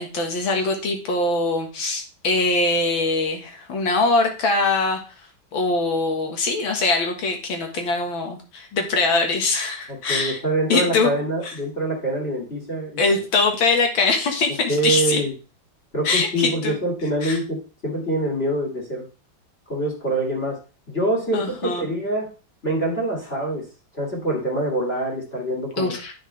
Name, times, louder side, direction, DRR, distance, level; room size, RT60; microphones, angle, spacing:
voice 1, 0.0-10.4 10.7-11.1 11.4-11.5 13.0-15.2 16.0-16.8 17.2-17.4 21.3-21.9 25.8-26.1, left 3 dB, 80° left, 3 dB, 2.3 m, -22 dB
voice 2, 9.9-13.1 14.7-15.3 15.9-19.1 19.7-20.6 20.9-22.3 22.6-23.6 23.9-25.9, right 1 dB, 30° left, -2 dB, 2.2 m, -25 dB
9.6 x 5.8 x 3.3 m, 0.34 s
omnidirectional pair, 2.1 m